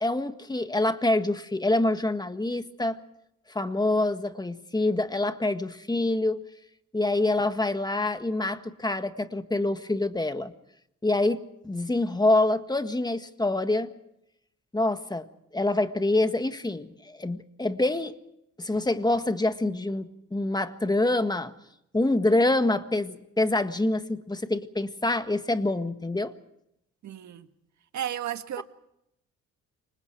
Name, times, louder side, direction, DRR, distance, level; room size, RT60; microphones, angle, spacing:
voice 1, 0.0-3.0 3.5-6.4 6.9-10.5 11.0-13.9 14.7-15.3 15.5-18.2 18.6-21.5 21.9-26.3 28.6-28.7, left 2 dB, 15° left, 1.6 m, -26 dB
voice 2, 27.0-27.5 27.9-28.6, right 10 dB, 65° right, 1.9 m, -33 dB
29.5 x 25.0 x 4.7 m
cardioid pair, 90°, 30 cm